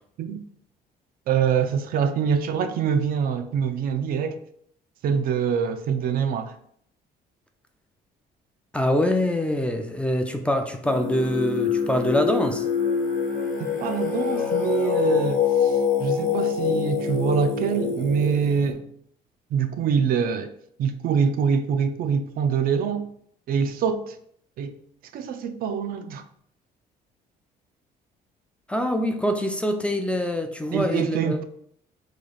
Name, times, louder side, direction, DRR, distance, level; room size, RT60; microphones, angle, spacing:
voice 1, 1.3-4.4 5.0-6.6 13.6-18.9 19.5-20.5 20.8-23.1 23.5-24.2 24.6-24.8 25.1-26.2 30.7-31.4, right 7 dB, 60° right, 0.4 m, -25 dB
voice 2, 8.7-12.7 28.7-31.4, equal, 5° left, 0.4 m, -24 dB
Singing, 10.8-18.7, left 7 dB, 50° left, 1.0 m, -25 dB
3.2 x 2.5 x 3.9 m
cardioid pair, 110°, 17 cm